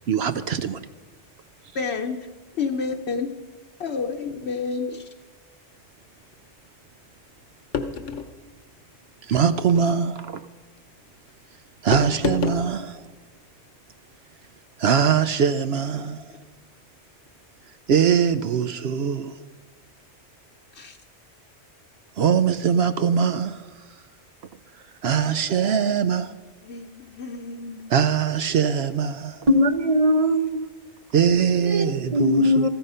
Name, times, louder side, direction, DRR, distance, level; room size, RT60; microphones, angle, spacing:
voice 1, 0.1-0.8 9.2-10.4 11.8-13.1 14.8-16.3 17.9-19.4 22.2-23.7 25.0-26.3 27.9-29.5 31.1-32.7, right 7 dB, 65° right, 0.8 m, -22 dB
voice 2, 1.7-2.3 2.5-3.3 3.8-5.1 20.7-21.0 26.6-27.8 29.5-29.7 32.3-32.7, left 5 dB, 65° left, 1.0 m, -30 dB
sound 1, 7.7-8.3 9.7-10.0 11.9-12.7, left 5 dB, 85° left, 1.3 m, -28 dB
voice 3, 29.5-30.7 31.7-32.7, left 1 dB, 35° right, 0.8 m, -20 dB
14.0 x 14.0 x 5.5 m
omnidirectional pair, 1.2 m